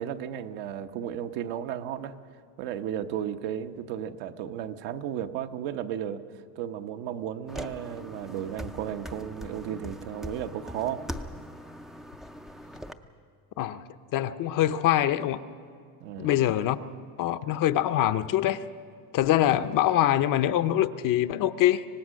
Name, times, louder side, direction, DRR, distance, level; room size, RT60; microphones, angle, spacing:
voice 1, 0.0-2.3 2.6-6.2 6.5-11.0 16.0-16.3, right 10 dB, 70° right, 7 dB, 1.2 m, -34 dB
sound 1, 7.5-12.9, equal, ahead, 0.4 m, -41 dB
voice 2, 14.1-15.4 16.2-16.8 17.2-18.6 19.1-21.8, left 12 dB, 45° left, 11 dB, 0.7 m, -24 dB
25.0 x 18.5 x 6.4 m, 2.3 s
cardioid pair, 140°, 45 cm